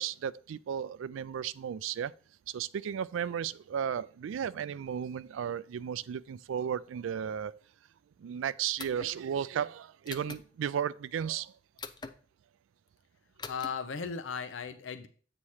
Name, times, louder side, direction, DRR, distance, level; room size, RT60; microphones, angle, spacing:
voice 1, 0.0-2.1 2.5-7.6 8.2-11.5, right 8 dB, 80° right, 0.3 m, -34 dB
sound 1, 8.8-9.1 10.1-10.4 11.8-12.1 13.4-13.7, left 4 dB, 20° left, 0.4 m, -42 dB
voice 2, 13.5-15.1, left 6 dB, 80° left, 0.6 m, -36 dB
8.4 x 3.0 x 6.3 m
head